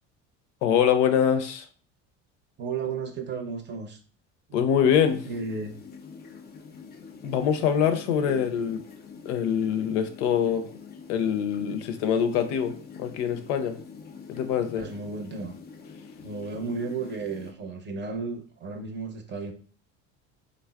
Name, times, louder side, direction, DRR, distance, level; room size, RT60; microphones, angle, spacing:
voice 1, 0.6-1.7 4.5-5.3 7.2-8.8 9.3-10.7 11.1-13.8 14.3-14.8, left 8 dB, 85° left, 8 dB, 0.5 m, -24 dB
voice 2, 2.6-4.0 4.5-4.6 5.3-5.7 8.2-8.4 14.7-15.6 16.2-19.5, right 4 dB, 30° right, 4 dB, 0.6 m, -34 dB
sound 1, 5.0-17.5, left 5 dB, 30° left, 0.4 m, -46 dB
3.4 x 2.0 x 2.3 m, 0.42 s
supercardioid pair, 85°, 35 cm